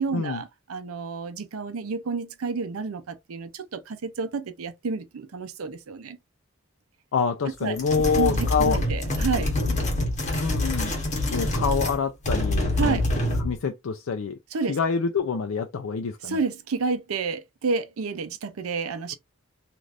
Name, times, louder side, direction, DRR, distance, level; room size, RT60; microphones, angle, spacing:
voice 1, 0.0-6.2 7.6-7.8 8.2-9.5 12.8-13.1 14.5-14.7 16.2-19.1, right 4 dB, 85° right, 0.5 m, -30 dB
voice 2, 7.1-8.8 9.5-9.8 10.4-10.9 11.3-13.0 13.4-14.4 14.7-16.4, left 5 dB, 65° left, 0.4 m, -26 dB
sound 1, 7.8-12.0 12.2-13.6, left 1 dB, 35° left, 1.1 m, -26 dB
3.2 x 2.5 x 2.5 m
head